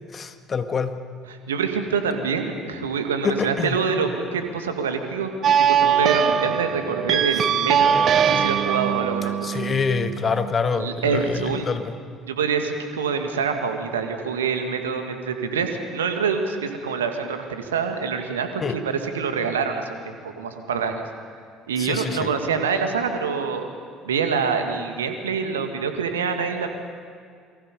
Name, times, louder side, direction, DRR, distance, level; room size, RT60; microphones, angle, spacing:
voice 1, 0.1-0.9 3.2-3.8 9.4-11.9 18.6-18.8 21.8-22.3, left 5 dB, 35° left, 8 dB, 1.8 m, -26 dB
voice 2, 1.3-5.3 5.6-9.6 10.8-11.7 12.2-21.0 21.7-23.7 24.0-26.7, right 5 dB, 75° right, 6 dB, 2.0 m, -26 dB
sound 1, 5.4-10.5, right 8 dB, 45° right, 1.0 m, -21 dB
29.0 x 23.5 x 5.4 m, 2.1 s
figure-of-eight pair, 55°, 0 cm